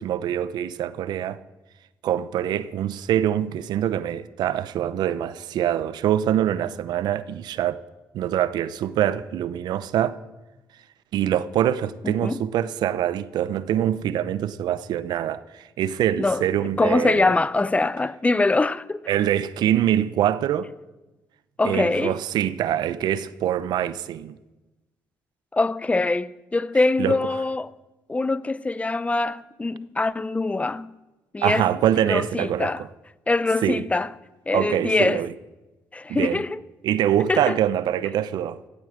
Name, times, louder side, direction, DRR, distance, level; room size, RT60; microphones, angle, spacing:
voice 1, 0.0-1.4 2.0-7.8 8.1-10.2 11.1-17.3 19.1-20.7 21.6-24.4 27.0-27.2 31.4-32.9 33.6-33.9 34.5-35.3 36.1-36.4 36.8-38.6, right 11 dB, 75° right, 0.7 m, -24 dB
voice 2, 12.0-12.4 16.2-16.4 16.8-19.1 21.6-22.1 25.5-27.7 28.1-30.9 31.3-31.7 32.1-32.8 33.3-34.1 34.5-35.2 35.9-36.6 37.3-37.6, left 3 dB, 20° left, 0.6 m, -23 dB
16.0 x 8.5 x 7.7 m
cardioid pair, 75°, 7 cm